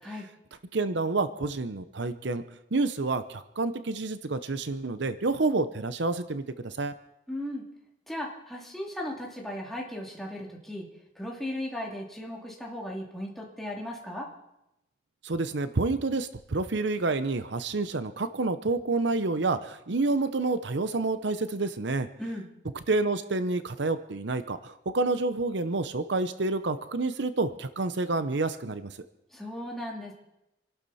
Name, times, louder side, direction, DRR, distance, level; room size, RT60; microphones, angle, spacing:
voice 1, 0.7-2.4 2.7-6.9 15.2-22.1 22.9-29.0, right 3 dB, 65° right, 11 dB, 0.7 m, -28 dB
voice 2, 7.3-7.6 8.1-10.9 11.2-14.3 22.2-22.5 29.3-30.1, left 1 dB, ahead, -3 dB, 2.7 m, -36 dB
27.5 x 12.0 x 4.2 m, 0.89 s
head